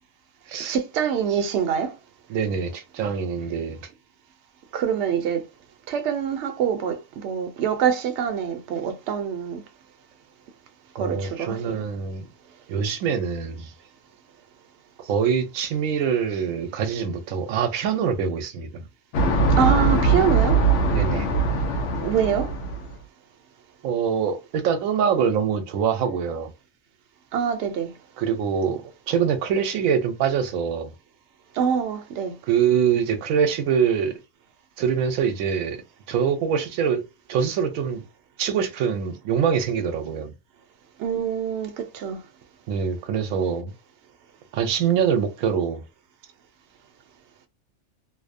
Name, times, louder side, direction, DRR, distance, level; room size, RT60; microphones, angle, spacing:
voice 1, 0.7-1.9 4.7-5.4 5.9-9.6 11.0-11.8 19.6-20.6 22.0-22.5 27.3-27.9 31.6-32.3 41.0-42.2, right 8 dB, 65° right, 0.8 m, -25 dB
voice 2, 2.3-3.8 11.0-12.3 12.7-13.7 15.0-18.8 20.9-21.4 23.8-26.5 28.2-30.9 32.5-34.2 34.8-35.8 36.1-37.0 37.3-38.0 38.4-40.3 42.7-43.7 44.5-45.8, right 7 dB, 90° right, 1.0 m, -24 dB
sound 1, 19.1-23.0, right 3 dB, 70° left, 0.9 m, -21 dB
2.7 x 2.0 x 2.4 m
omnidirectional pair, 1.4 m